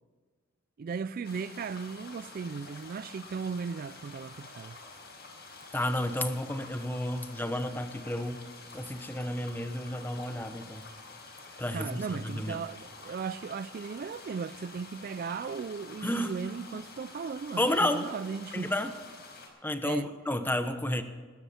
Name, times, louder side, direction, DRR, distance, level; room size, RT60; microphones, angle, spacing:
voice 1, 0.8-4.8 11.7-18.7 19.8-20.1, right 5 dB, 45° right, 0.3 m, -37 dB
sound 1, 1.2-19.5, left 3 dB, 55° left, 4.7 m, -48 dB
voice 2, 5.7-8.4 8.7-10.8 11.6-12.6 16.0-16.3 17.6-18.0 18.5-18.9 19.6-21.0, left 1 dB, 10° left, 1.0 m, -31 dB
20.0 x 13.0 x 4.3 m
head